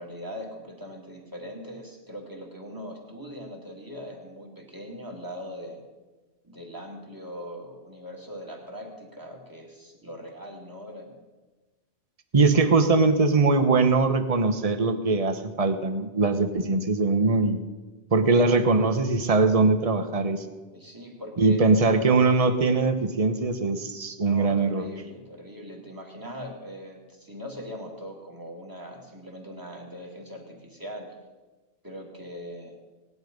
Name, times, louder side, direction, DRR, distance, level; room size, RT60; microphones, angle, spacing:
voice 1, 0.0-5.8 6.4-11.1 20.7-21.6 24.2-31.1 31.8-32.8, equal, 20° right, 0 dB, 2.4 m, -40 dB
voice 2, 12.3-17.6 18.1-20.4 21.4-24.9, right 3 dB, 35° right, 8 dB, 1.1 m, -21 dB
18.0 x 11.0 x 5.3 m, 1.2 s
omnidirectional pair, 1.1 m